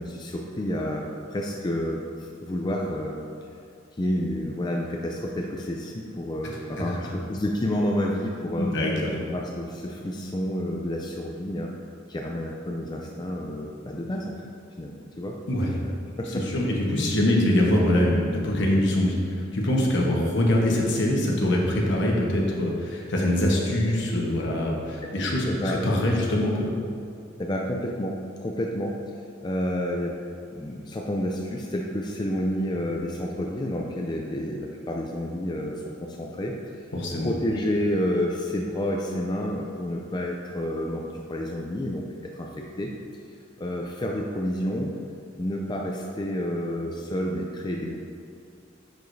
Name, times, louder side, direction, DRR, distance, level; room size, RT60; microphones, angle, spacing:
voice 1, 0.0-3.2 4.0-8.7 9.2-11.7 12.1-14.4 14.8-15.4 15.6-15.8 16.2-16.4 25.0-25.1 25.5-25.8 27.4-29.1 29.4-30.2 30.5-36.9 37.2-42.0 42.3-42.9 43.6-44.9 45.4-48.0, left 1 dB, 20° left, 0 dB, 0.4 m, -29 dB
voice 2, 6.8-7.1 8.6-9.1 15.5-15.7 16.5-26.7 36.9-37.3, left 1 dB, 65° left, -2 dB, 1.2 m, -23 dB
10.5 x 4.8 x 2.7 m, 2.5 s
head